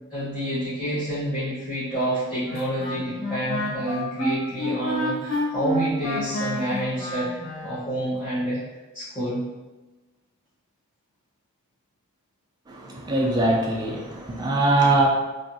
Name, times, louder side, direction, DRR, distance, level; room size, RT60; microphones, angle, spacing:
voice 1, 0.1-7.3 7.6-8.6 8.9-9.5, equal, 20° left, -14 dB, 1.2 m, -28 dB
Wind instrument woodwind instrument, 2.5-7.8, left 1 dB, 65° left, 0.6 m, -29 dB
voice 2, 12.7-15.1, right 2 dB, 20° right, -2 dB, 0.4 m, -22 dB
3.5 x 2.4 x 2.7 m, 1.2 s
head